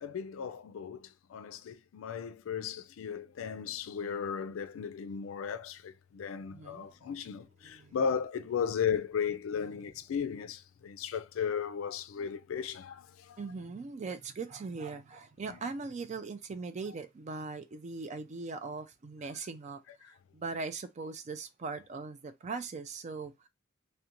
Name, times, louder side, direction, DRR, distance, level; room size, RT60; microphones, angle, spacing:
voice 1, 0.0-13.4 20.0-20.1, left 7 dB, 80° left, 0.3 m, -36 dB
voice 2, 6.5-6.9 7.6-8.0 13.4-23.5, right 4 dB, 35° right, 0.4 m, -40 dB
2.5 x 2.1 x 2.9 m
head